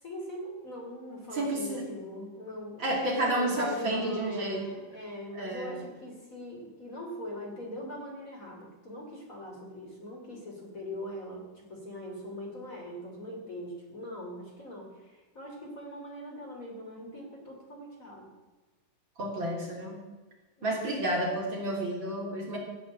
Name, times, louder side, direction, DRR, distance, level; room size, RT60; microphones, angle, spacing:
voice 1, 0.0-18.3 20.6-20.8, left 1 dB, 20° left, -1 dB, 2.7 m, -41 dB
voice 2, 1.3-1.8 2.8-4.6 5.3-5.8 19.2-20.0 20.6-22.6, right 1 dB, 30° right, -1 dB, 3.4 m, -31 dB
16.0 x 8.3 x 7.8 m, 1.2 s
omnidirectional pair, 5.0 m